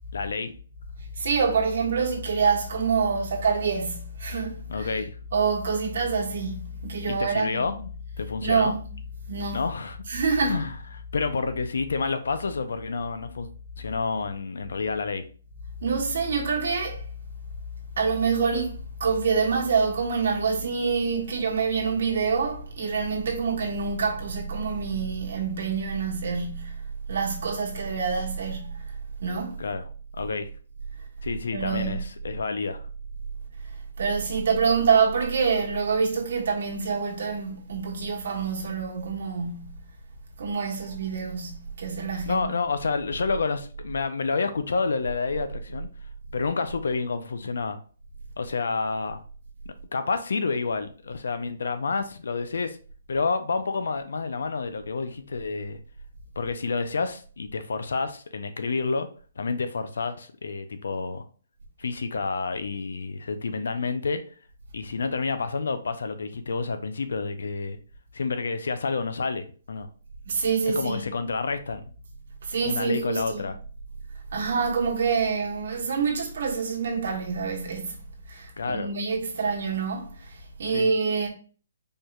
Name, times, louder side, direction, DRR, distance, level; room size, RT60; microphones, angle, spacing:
voice 1, 0.1-0.5 4.7-5.1 7.1-7.9 8.2-8.8 9.5-10.0 10.4-10.8 11.1-13.5 13.8-15.2 29.6-29.8 30.1-30.5 31.2-32.8 42.3-45.9 46.3-47.8 48.4-49.2 49.7-52.8 53.1-55.8 56.4-59.1 59.4-61.2 61.8-64.2 64.7-67.8 68.1-69.9 70.7-71.8 72.6-73.5 78.6-78.9 80.7-80.9, left 4 dB, 70° left, 0.5 m, -29 dB
voice 2, 1.2-4.9 5.3-7.7 8.4-8.8 9.3-9.7 10.1-10.6 15.8-17.0 18.0-26.8 27.1-28.8 29.2-29.6 31.5-31.9 34.0-39.8 40.4-42.4 70.2-71.1 72.4-73.5 74.3-78.0 78.3-81.3, right 5 dB, 50° right, 1.1 m, -26 dB
4.4 x 3.2 x 2.3 m
hypercardioid pair, 180°, 0 cm